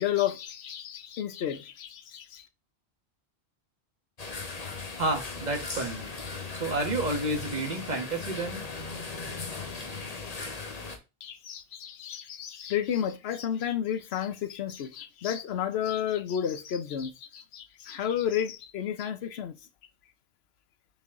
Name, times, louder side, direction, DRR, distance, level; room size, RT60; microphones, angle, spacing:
voice 1, 0.0-2.4 11.2-19.5, left 9 dB, 65° left, 1.0 m, -32 dB
sound 1, 4.2-11.0, left 4 dB, 35° left, 1.0 m, -37 dB
voice 2, 5.0-6.1 6.5-8.6, right 2 dB, 40° right, 1.6 m, -30 dB
6.8 x 4.3 x 3.7 m
omnidirectional pair, 1.2 m